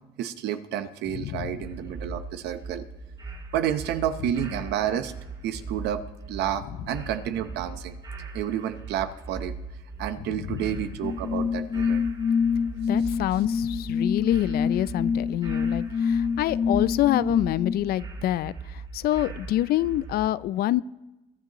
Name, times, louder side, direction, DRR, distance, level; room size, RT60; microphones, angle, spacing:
voice 1, 0.2-2.8 3.5-5.1 5.4-6.0 6.3-8.0 8.3-9.6 10.0-12.1, right 10 dB, 80° right, 10 dB, 0.9 m, -30 dB
voice 2, 1.2-1.6 10.5-10.6 12.9-20.8, left 13 dB, 65° left, 19 dB, 0.4 m, -26 dB
sound 1, 1.6-20.3, right 3 dB, 30° right, 2.9 m, -40 dB
sound 2, 11.0-17.7, left 6 dB, 45° left, 1.6 m, -26 dB
22.0 x 10.5 x 3.0 m, 1.0 s
cardioid pair, 110°, 17 cm